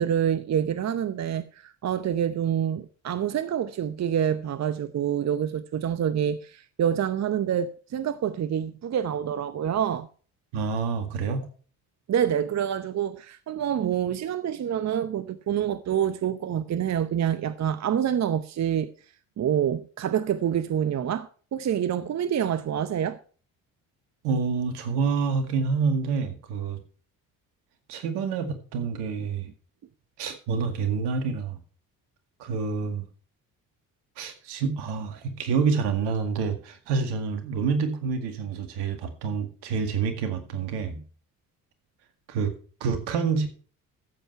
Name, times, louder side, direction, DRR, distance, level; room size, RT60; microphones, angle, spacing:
voice 1, 0.0-10.1 12.1-18.9 19.4-23.2, right 9 dB, 40° right, 0.8 m, -27 dB
voice 2, 10.5-11.5 24.2-26.8 27.9-29.5 30.2-31.6 32.4-33.0 34.2-41.0 42.3-42.5 42.8-43.5, right 5 dB, 70° right, 2.1 m, -27 dB
14.0 x 7.9 x 4.5 m
hypercardioid pair, 55°, 42 cm